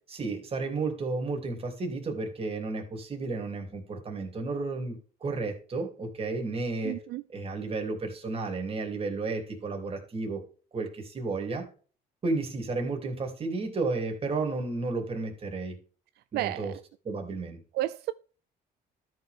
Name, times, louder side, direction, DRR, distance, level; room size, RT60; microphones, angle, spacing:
voice 1, 0.1-7.0 7.3-10.4 10.7-11.6 12.2-15.7 16.3-16.7 17.0-17.6, right 3 dB, 35° right, 3.1 m, -32 dB
voice 2, 6.8-7.2 16.2-16.8 17.7-18.1, right 16 dB, 75° right, 0.4 m, -32 dB
13.0 x 5.8 x 3.6 m
cardioid pair, 110°, 17 cm